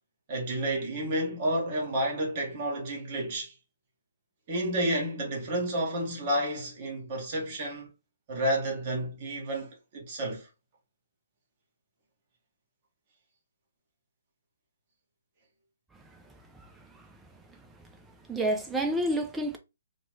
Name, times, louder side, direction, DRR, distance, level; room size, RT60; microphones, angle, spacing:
voice 1, 0.3-3.5 4.5-7.9 8.3-10.5, right 1 dB, 35° right, 1.1 m, -30 dB
voice 2, 16.5-17.1 17.5-17.6 18.3-19.6, right 1 dB, 10° right, 0.5 m, -30 dB
3.0 x 2.2 x 3.1 m
figure-of-eight pair, 130°, 0 cm